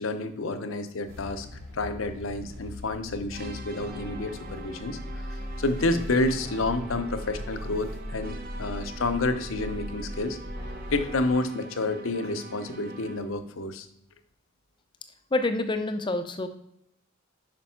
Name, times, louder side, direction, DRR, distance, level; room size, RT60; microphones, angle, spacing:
voice 1, 0.0-1.5 1.7-5.0 5.6-10.4 10.9-13.9, left 2 dB, 85° left, 9 dB, 0.8 m, -29 dB
sound 1, 1.1-11.3, equal, 75° right, 2.4 m, -39 dB
sound 2, 3.3-13.4, right 2 dB, 45° right, 0.8 m, -44 dB
voice 2, 15.3-16.5, left 2 dB, 25° left, 8 dB, 0.5 m, -27 dB
5.2 x 5.2 x 5.7 m, 0.76 s
head